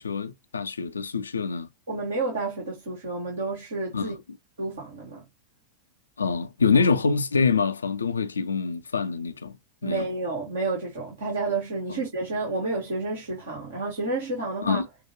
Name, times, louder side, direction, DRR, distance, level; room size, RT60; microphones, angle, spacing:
voice 1, 0.0-1.7 3.9-4.2 6.2-9.6 9.8-10.1 14.6-14.9, left 5 dB, 75° left, 0.4 m, -25 dB
voice 2, 1.9-4.1 4.6-5.3 6.7-6.8 9.8-14.8, right 3 dB, 65° right, 2.0 m, -30 dB
5.8 x 2.3 x 2.8 m
figure-of-eight pair, 90°, 0 cm